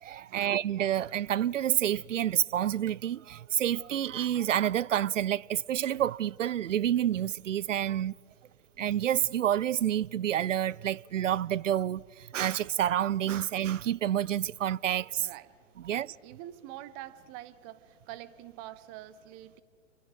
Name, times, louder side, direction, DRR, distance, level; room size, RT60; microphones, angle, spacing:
voice 1, 0.0-8.2 8.8-15.3 15.8-16.1, right 11 dB, 80° right, 0.5 m, -28 dB
voice 2, 15.2-15.5 15.8-19.6, right 13 dB, 35° right, 1.1 m, -46 dB
28.5 x 24.0 x 4.6 m
figure-of-eight pair, 110°, 37 cm